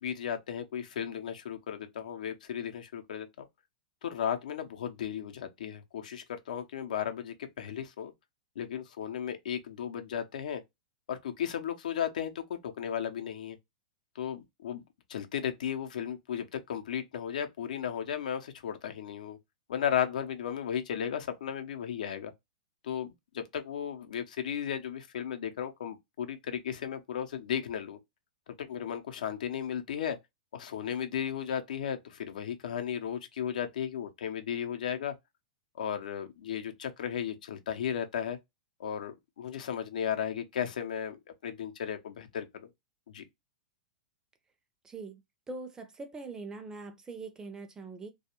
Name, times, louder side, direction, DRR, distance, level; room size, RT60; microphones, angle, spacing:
voice 1, 0.0-3.5 4.0-8.1 8.6-10.6 11.1-13.6 14.1-14.8 15.1-19.4 19.7-22.3 22.8-28.0 28.5-30.2 30.5-35.1 35.8-38.4 38.8-42.7 43.1-43.3, left 8 dB, 75° left, 0.6 m, -35 dB
voice 2, 44.8-45.2 45.5-48.1, right 3 dB, 15° right, 0.5 m, -42 dB
2.3 x 2.2 x 2.8 m
hypercardioid pair, 110°, 4 cm